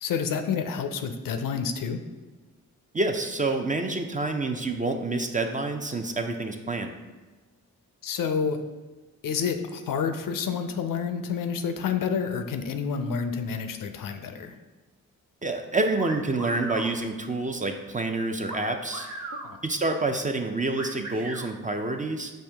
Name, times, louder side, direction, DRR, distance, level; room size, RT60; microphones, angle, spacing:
voice 1, 0.0-2.0 8.0-8.6 9.2-14.6 19.4-19.6, left 6 dB, 65° left, 7 dB, 0.5 m, -29 dB
voice 2, 2.9-6.9 15.4-19.1 19.6-22.3, right 2 dB, 20° right, 5 dB, 0.5 m, -28 dB
sound 1, 16.0-16.9 18.5-19.5 20.8-21.5, right 2 dB, 60° right, 0.9 m, -37 dB
5.4 x 2.6 x 3.4 m, 1.2 s
supercardioid pair, 40°, 36 cm